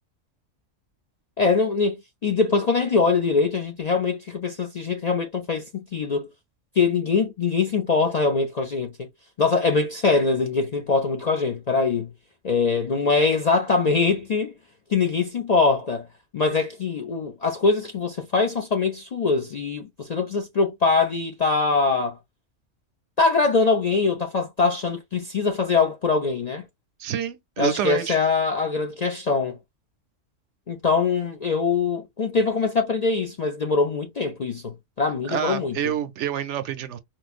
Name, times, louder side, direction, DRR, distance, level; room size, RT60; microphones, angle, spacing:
voice 1, 1.4-2.0 2.2-6.3 6.8-9.1 9.4-12.1 12.4-14.5 14.9-16.1 16.3-22.2 23.2-26.7 27.6-29.6 30.7-35.8, left 4 dB, 50° left, 0.5 m, -23 dB
voice 2, 27.0-28.2 35.3-37.0, right 9 dB, 75° right, 0.9 m, -27 dB
4.6 x 2.2 x 2.4 m
omnidirectional pair, 1.3 m